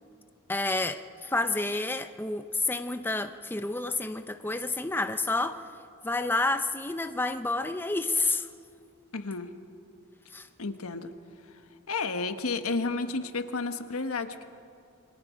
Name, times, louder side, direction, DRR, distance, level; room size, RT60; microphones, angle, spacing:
voice 1, 0.5-5.6 6.0-8.5 10.3-10.5, left 2 dB, 10° left, 9 dB, 0.6 m, -29 dB
voice 2, 9.1-9.5 10.6-11.1 11.9-14.4, left 3 dB, 90° left, 8 dB, 1.3 m, -31 dB
28.0 x 23.5 x 5.1 m, 2.5 s
head